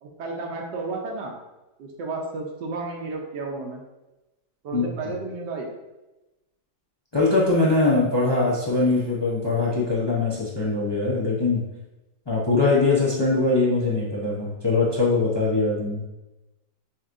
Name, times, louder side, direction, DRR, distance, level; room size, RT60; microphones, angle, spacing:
voice 1, 0.0-1.4 1.8-3.8 4.6-5.7, right 3 dB, 85° right, 0 dB, 1.4 m, -32 dB
voice 2, 7.1-11.6 12.3-16.0, left 3 dB, 40° left, -6 dB, 0.3 m, -22 dB
6.9 x 3.0 x 2.6 m, 1.0 s
omnidirectional pair, 1.9 m